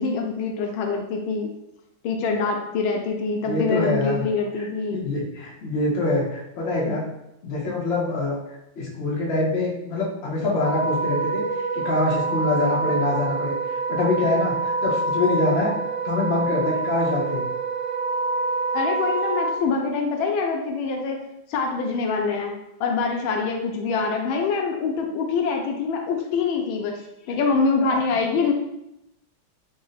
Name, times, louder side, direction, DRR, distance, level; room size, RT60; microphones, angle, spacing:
voice 1, 0.0-1.5 2.0-5.0 18.7-21.2 21.5-22.5 22.8-27.0 27.3-28.5, left 4 dB, 80° left, 2 dB, 1.4 m, -24 dB
voice 2, 3.4-4.3 4.6-7.0 7.4-15.7 16.0-17.4 27.9-28.0, left 2 dB, 55° left, -3 dB, 0.7 m, -25 dB
Wind instrument woodwind instrument, 10.5-19.5, right 3 dB, 75° right, 1.5 m, -26 dB
3.9 x 2.0 x 3.9 m, 0.86 s
omnidirectional pair, 2.2 m